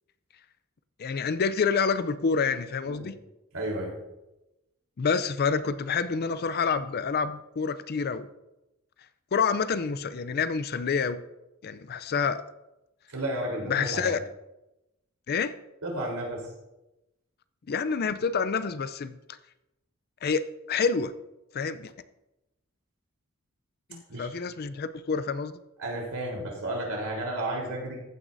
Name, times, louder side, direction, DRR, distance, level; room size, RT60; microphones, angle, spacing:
voice 1, 1.0-3.2 5.0-8.3 9.3-11.2 11.6-12.4 13.6-14.2 15.3-15.5 17.7-19.2 20.2-21.1 21.5-21.9 23.9-25.5, left 5 dB, 45° left, 13 dB, 0.4 m, -28 dB
voice 2, 3.5-3.9 13.1-14.1 15.8-16.5 24.1-24.3 25.8-28.0, right 1 dB, 85° right, -1 dB, 3.7 m, -32 dB
15.0 x 9.3 x 2.7 m, 0.96 s
head